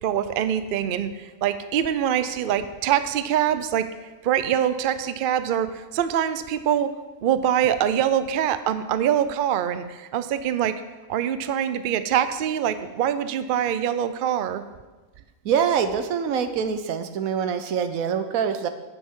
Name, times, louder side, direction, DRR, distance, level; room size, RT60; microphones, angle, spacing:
voice 1, 0.0-3.9 4.2-6.9 7.2-10.8 11.1-14.6, right 9 dB, 60° right, 12 dB, 0.5 m, -24 dB
voice 2, 15.4-18.7, right 7 dB, 85° right, 9 dB, 1.1 m, -24 dB
10.5 x 9.2 x 3.7 m, 1.2 s
omnidirectional pair, 1.4 m